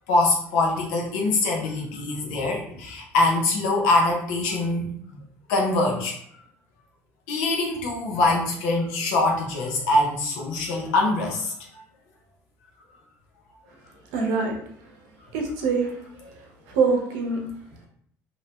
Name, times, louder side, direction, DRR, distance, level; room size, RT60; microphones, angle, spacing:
voice 1, 0.1-4.9 5.5-6.2 7.3-11.5, left 2 dB, 85° left, 0 dB, 0.7 m, -23 dB
voice 2, 14.1-14.6 15.3-15.9 16.2-16.3 16.7-17.4, right 4 dB, 85° right, 1 dB, 0.7 m, -24 dB
2.7 x 2.2 x 2.8 m, 0.64 s
supercardioid pair, 95°, 6 cm